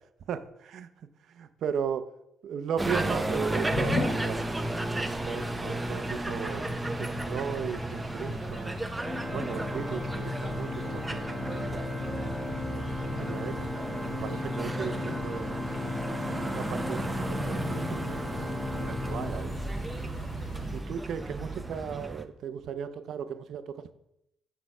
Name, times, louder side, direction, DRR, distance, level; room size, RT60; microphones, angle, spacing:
voice 1, 0.3-0.9 1.3-2.0 2.4-6.6 7.0-8.8 9.3-11.9 12.4-15.5 16.2-19.6 20.7-23.9, right 7 dB, 70° right, 10 dB, 0.6 m, -37 dB
sound 1, 2.8-22.2, right 2 dB, 15° right, 0.6 m, -34 dB
sound 2, 3.0-20.8, left 2 dB, 60° left, 2.3 m, -39 dB
Organ, 9.0-20.1, left 2 dB, 5° left, 1.2 m, -36 dB
6.3 x 4.6 x 5.4 m, 0.81 s
cardioid pair, 90°, 0 cm